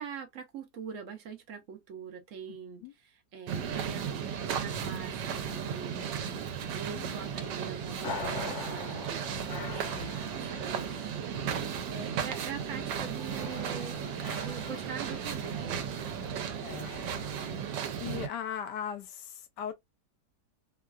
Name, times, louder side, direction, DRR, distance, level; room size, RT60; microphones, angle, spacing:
voice 1, 0.0-14.0 14.4-15.9 16.4-16.8, right 6 dB, 60° right, 0.8 m, -44 dB
voice 2, 2.5-2.9 6.9-7.2 10.5-10.8 16.6-17.2 17.6-19.7, left 9 dB, 75° left, 1.2 m, -40 dB
sound 1, 3.5-18.3, right 7 dB, 80° right, 1.2 m, -35 dB
sound 2, 7.2-17.5, left 4 dB, 45° left, 1.0 m, -45 dB
3.0 x 2.3 x 2.3 m
omnidirectional pair, 1.9 m